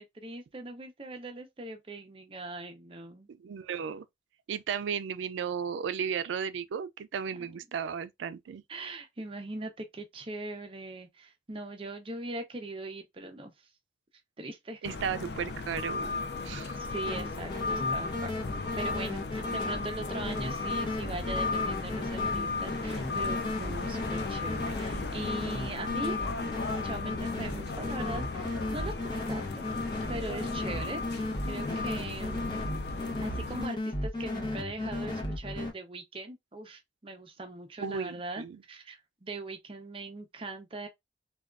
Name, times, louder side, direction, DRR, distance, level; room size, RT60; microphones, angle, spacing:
voice 1, 0.0-3.3 7.5-7.6 8.7-13.5 14.4-15.2 16.8-18.3 18.7-26.2 26.8-29.6 30.1-32.6 33.2-40.9, right 2 dB, 30° right, 0.5 m, -41 dB
voice 2, 3.3-4.0 4.5-8.6 14.8-16.1 16.4-16.8 37.8-38.6, right 7 dB, 85° right, 0.3 m, -34 dB
sound 1, 14.8-33.7, left 4 dB, 60° left, 0.5 m, -35 dB
sound 2, 17.0-35.7, left 2 dB, 25° left, 0.7 m, -35 dB
3.4 x 2.3 x 2.3 m
head